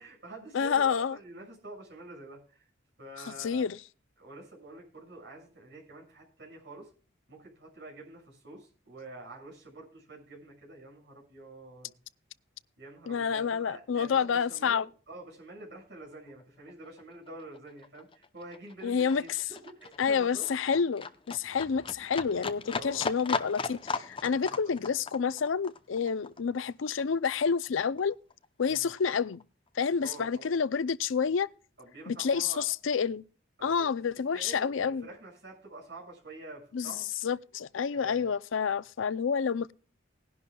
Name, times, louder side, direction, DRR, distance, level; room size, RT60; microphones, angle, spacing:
voice 1, 0.0-2.7 3.0-3.7 4.2-6.9 7.3-11.9 12.8-20.5 22.7-23.1 24.2-24.6 28.7-28.9 30.0-30.5 31.8-32.6 33.6-33.9 34.3-37.1 37.9-38.3, right 2 dB, 60° right, 6.4 m, -47 dB
voice 2, 0.5-1.2 3.3-3.8 13.1-14.9 18.8-19.5 20.0-28.2 28.6-29.4 29.8-31.5 32.1-33.2 33.6-35.1 36.7-36.9 37.2-39.7, left 6 dB, 85° left, 0.5 m, -29 dB
Livestock farm animals working animals, 16.3-16.4 16.7-27.7 28.0-29.0 29.3-29.4, left 4 dB, 25° left, 0.7 m, -38 dB
20.0 x 11.0 x 2.3 m
head